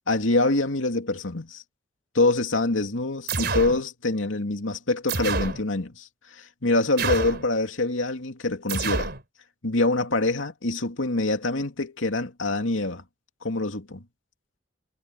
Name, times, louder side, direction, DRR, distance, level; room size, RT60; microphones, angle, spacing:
voice 1, 0.1-1.6 2.1-9.1 9.6-13.0 13.4-14.0, left 2 dB, 80° left, 2.7 m, -25 dB
sound 1, 3.3-3.8 5.1-5.6 7.0-7.5 8.7-9.2, right 3 dB, 55° right, 4.4 m, -27 dB
head